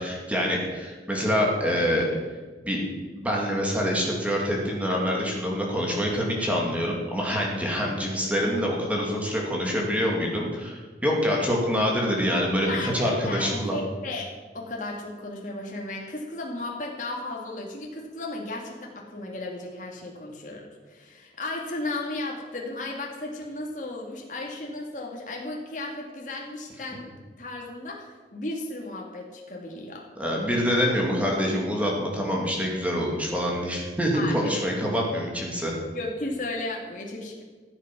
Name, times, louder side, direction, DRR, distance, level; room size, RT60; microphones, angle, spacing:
voice 1, 0.0-2.1 2.6-2.8 3.1-13.8 30.2-35.8, equal, 10° right, -2 dB, 2.5 m, -26 dB
voice 2, 12.6-14.3 14.5-27.1 27.4-30.0 34.1-34.5 35.9-37.4, left 2 dB, 45° left, -1 dB, 2.1 m, -35 dB
14.5 x 8.2 x 6.1 m, 1.4 s
head